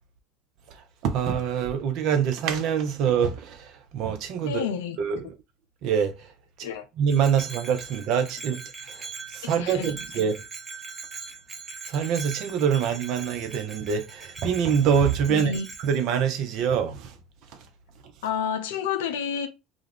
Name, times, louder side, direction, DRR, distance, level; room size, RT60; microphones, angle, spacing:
voice 1, 0.7-4.6 5.0-5.2 5.8-6.3 6.6-6.7 7.0-8.6 8.9-10.3 11.9-15.5 15.8-17.1, right 7 dB, 55° right, 0.5 m, -25 dB
voice 2, 4.4-5.0 6.6-6.8 9.4-10.2 15.3-15.7 18.2-19.5, left 7 dB, 70° left, 0.4 m, -30 dB
Bell, 7.1-16.0, right 4 dB, 25° right, 0.8 m, -41 dB
2.3 x 2.0 x 3.2 m
figure-of-eight pair, 65°, 0 cm